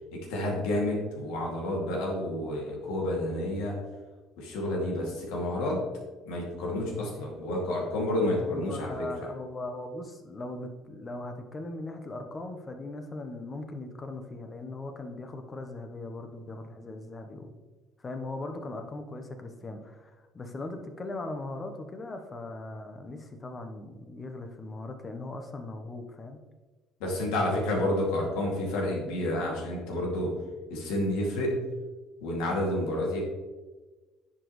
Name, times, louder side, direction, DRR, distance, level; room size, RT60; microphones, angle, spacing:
voice 1, 0.1-3.8 4.4-5.8 6.3-9.1 27.0-30.4 30.7-31.6 32.2-33.2, left 1 dB, 85° left, -2 dB, 2.5 m, -30 dB
voice 2, 8.3-17.6 18.0-26.4, left 2 dB, 25° left, 6 dB, 1.0 m, -39 dB
10.0 x 5.2 x 3.2 m, 1.2 s
cardioid pair, 110°, 0 cm